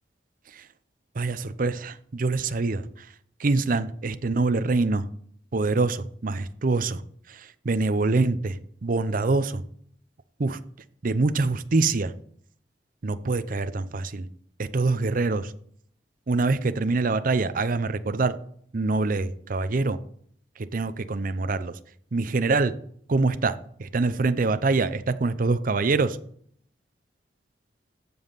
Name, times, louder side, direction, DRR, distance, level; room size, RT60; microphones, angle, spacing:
voice 1, 1.2-2.8 3.4-5.0 5.5-7.0 7.7-8.5 8.8-9.6 10.4-10.6 11.0-12.1 13.0-14.3 14.6-15.5 16.3-18.3 18.7-20.0 20.7-21.7 22.1-22.7 23.1-23.5 23.8-26.2, right 3 dB, 50° right, 12 dB, 0.6 m, -24 dB
14.5 x 5.4 x 4.0 m, 0.62 s
head